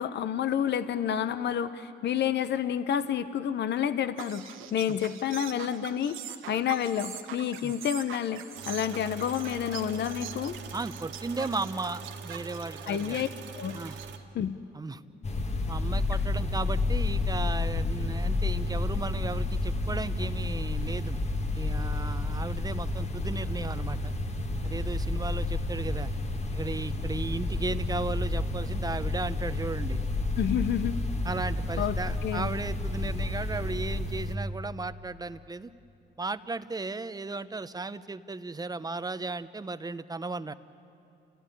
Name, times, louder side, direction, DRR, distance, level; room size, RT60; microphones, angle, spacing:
voice 1, 0.0-4.4 4.7-6.2 6.5-10.6 12.9-13.3 13.6-13.8 14.3-14.5 30.4-30.9 31.8-32.5, left 9 dB, 60° left, 12 dB, 0.8 m, -29 dB
sound 1, 4.2-14.2, right 10 dB, 85° right, 1.6 m, -43 dB
sound 2, 8.5-14.2, right 5 dB, 70° right, 2.2 m, -43 dB
voice 2, 10.7-13.3 13.7-14.0 14.7-15.0 15.7-21.2 21.5-24.1 24.6-26.1 26.5-30.0 31.2-35.7 36.2-40.5, right 3 dB, 20° right, 13 dB, 0.8 m, -35 dB
sound 3, 15.2-34.4, left 2 dB, 35° left, 1.6 m, -30 dB
29.0 x 16.0 x 10.0 m, 2.6 s
cardioid pair, 90°, 20 cm